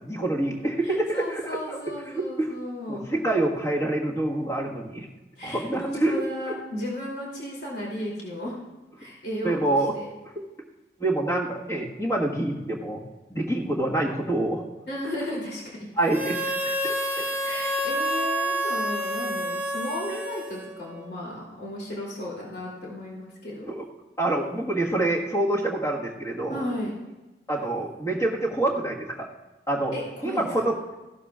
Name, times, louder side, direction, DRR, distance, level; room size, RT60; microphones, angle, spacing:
voice 1, 0.0-2.5 2.9-5.1 5.4-6.6 9.4-9.9 10.3-10.4 11.0-13.0 13.3-14.6 15.3-15.4 16.0-16.7 23.6-23.9 24.2-26.6 27.5-29.3 29.7-29.9 30.2-30.8, right 2 dB, 15° left, -2 dB, 1.6 m, -26 dB
voice 2, 0.8-3.1 5.4-8.5 9.0-10.1 14.9-15.9 17.1-23.7 26.5-26.9 29.9-30.5, left 1 dB, 65° left, -4 dB, 3.0 m, -34 dB
Harmonica, 16.1-20.9, equal, 10° right, 1.2 m, -28 dB
16.0 x 12.0 x 2.4 m, 1.1 s
head